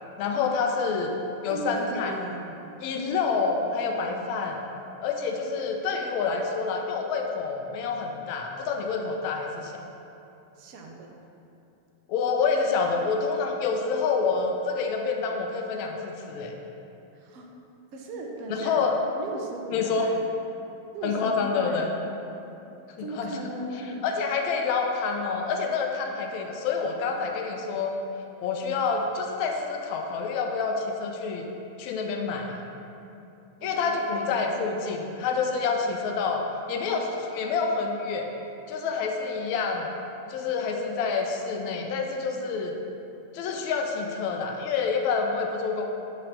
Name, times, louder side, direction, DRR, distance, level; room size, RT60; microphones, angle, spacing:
voice 1, 0.2-1.1 1.4-2.1 2.8-4.6 5.0-9.8 12.1-16.5 18.5-18.9 19.7-20.1 21.0-21.9 23.0-23.3 24.0-27.9 28.4-31.4 31.8-32.6 33.6-38.3 38.7-39.9 40.3-42.8 43.3-45.9, left 5 dB, 45° left, 2 dB, 0.7 m, -27 dB
voice 2, 1.5-2.6 10.6-11.2 17.1-17.5 17.9-18.8 19.1-20.2 20.9-22.0 23.0-24.0 33.6-34.4, right 2 dB, 45° right, 1 dB, 0.8 m, -37 dB
8.6 x 3.1 x 5.3 m, 2.8 s
figure-of-eight pair, 90°, 0 cm